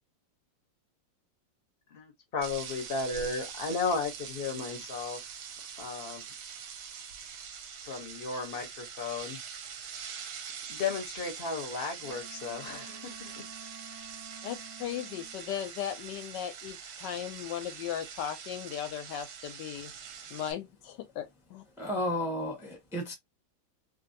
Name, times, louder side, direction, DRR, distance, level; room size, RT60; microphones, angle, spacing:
voice 1, 1.9-5.2 5.8-6.2 7.8-9.4 10.7-13.5, left 4 dB, 45° left, 0.7 m, -34 dB
sound 1, 2.4-20.5, right 7 dB, 70° right, 1.0 m, -44 dB
Wind instrument woodwind instrument, 12.0-15.5, right 4 dB, 50° right, 0.7 m, -51 dB
voice 2, 14.4-19.9 20.3-21.2 21.5-21.6, left 10 dB, 75° left, 1.1 m, -37 dB
voice 3, 21.8-23.1, left 1 dB, ahead, 0.6 m, -32 dB
3.1 x 2.6 x 2.6 m
omnidirectional pair, 2.0 m